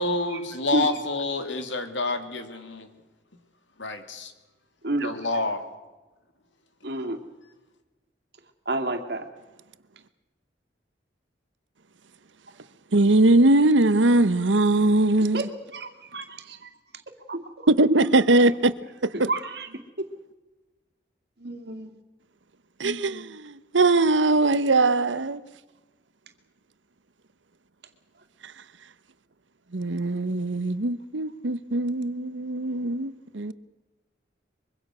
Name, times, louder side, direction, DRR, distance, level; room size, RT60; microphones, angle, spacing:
voice 1, 0.0-2.9 3.8-4.3 5.0-5.6, left 2 dB, 85° left, 2.8 m, -28 dB
voice 2, 6.8-7.2 8.7-9.3 15.3-15.5 15.7-16.7 17.3-18.4 19.1-19.7 21.4-21.9, right 1 dB, 60° right, 2.4 m, -30 dB
voice 3, 12.9-15.5 17.7-18.7 19.0-19.3 22.8-25.4 28.4-28.5 29.7-33.5, right 2 dB, 85° right, 1.0 m, -21 dB
24.0 x 23.5 x 6.2 m
head